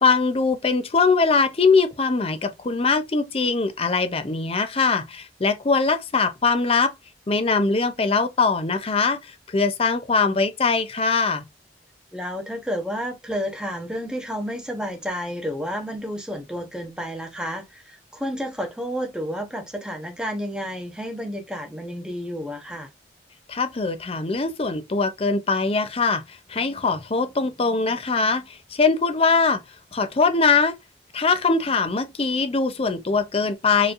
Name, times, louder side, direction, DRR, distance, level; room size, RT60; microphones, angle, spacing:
voice 1, 0.0-6.9 7.3-11.4 23.5-29.6 29.9-30.8 31.1-33.9, left 4 dB, 35° left, 0.5 m, -22 dB
voice 2, 12.1-22.9, equal, 5° right, 0.9 m, -31 dB
4.6 x 3.2 x 2.5 m
head